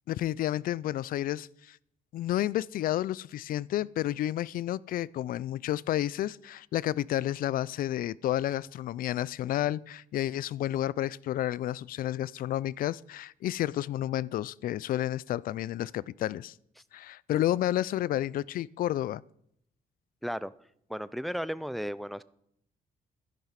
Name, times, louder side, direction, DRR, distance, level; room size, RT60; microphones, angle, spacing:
voice 1, 0.1-1.8 2.1-16.5 16.9-19.2, left 13 dB, 65° left, 0.4 m, -31 dB
voice 2, 20.2-20.5 20.9-22.2, equal, ahead, 0.4 m, -34 dB
12.5 x 10.5 x 5.8 m
cardioid pair, 130°, 15 cm